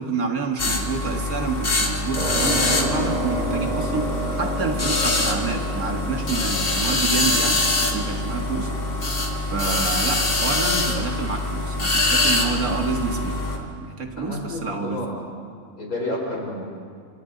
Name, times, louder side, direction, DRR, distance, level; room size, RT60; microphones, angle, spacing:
voice 1, 0.0-4.1 4.4-8.7 9.5-15.0, right 4 dB, 80° right, 3 dB, 2.3 m, -28 dB
sound 1, 0.6-13.6, left 2 dB, 40° left, 2.2 m, -24 dB
sound 2, 2.1-11.8, right 1 dB, 60° right, 3.9 m, -32 dB
voice 2, 14.2-15.3 15.8-16.7, left 1 dB, 80° left, -1 dB, 4.9 m, -30 dB
29.0 x 25.0 x 4.0 m, 2.2 s
omnidirectional pair, 1.5 m